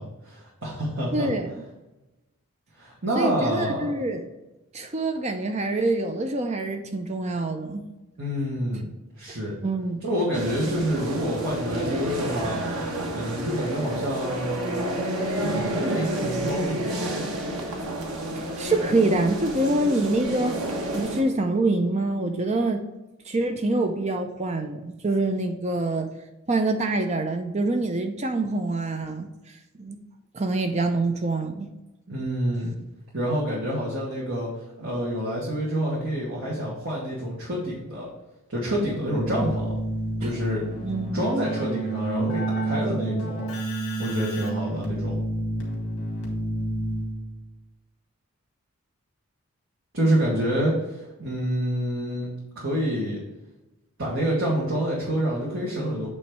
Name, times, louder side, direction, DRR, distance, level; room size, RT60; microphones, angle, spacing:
voice 1, 0.0-1.3 2.8-3.9 8.2-8.9 9.2-9.5 10.0-12.6 13.1-14.9 15.3-17.2 32.1-32.8 33.1-34.5 34.8-38.1 38.5-39.7 40.2-40.6 41.1-43.5 44.0-45.2 49.9-52.3 52.5-53.2 54.0-56.1, equal, 60° right, -6 dB, 1.7 m, -27 dB
voice 2, 1.1-1.5 3.2-4.3 4.7-7.8 9.6-10.0 18.3-20.6 20.9-22.8 23.3-26.1 26.5-29.3 29.8-30.0 30.3-31.7 40.2-40.3 40.8-41.3, right 2 dB, 30° right, 6 dB, 0.5 m, -25 dB
sound 1, 10.3-21.2, right 1 dB, 85° right, 1.2 m, -30 dB
Keyboard (musical), 39.1-47.4, right 2 dB, 70° left, 1.9 m, -29 dB
8.6 x 3.2 x 4.7 m, 1.0 s
head